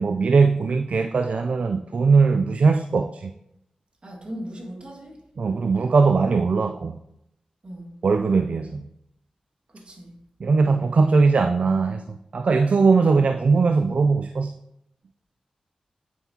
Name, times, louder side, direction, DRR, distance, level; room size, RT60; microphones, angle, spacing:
voice 1, 0.0-3.3 5.4-7.0 8.0-8.9 10.4-14.5, right 4 dB, 65° right, 7 dB, 0.3 m, -20 dB
voice 2, 4.0-5.2 7.6-7.9 9.7-10.1, equal, 50° right, 0 dB, 1.9 m, -38 dB
9.1 x 5.7 x 2.8 m, 0.81 s
cardioid pair, 45°, 2 cm